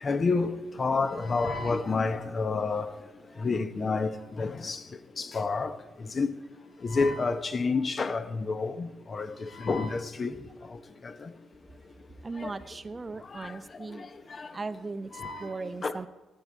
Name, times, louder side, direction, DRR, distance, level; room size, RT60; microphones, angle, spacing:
voice 1, 0.0-2.9 3.4-4.1 4.4-4.8 5.2-5.7 6.1-6.3 6.8-10.3 11.0-11.3 12.4-12.5 13.3-13.5 13.9-14.1 14.4-14.5 15.1-15.6 15.8-16.0, left 4 dB, 35° left, 0.9 m, -29 dB
voice 2, 12.2-14.0 14.5-16.1, right 3 dB, 25° right, 0.7 m, -38 dB
17.5 x 8.6 x 4.5 m
cardioid pair, 90°, 0 cm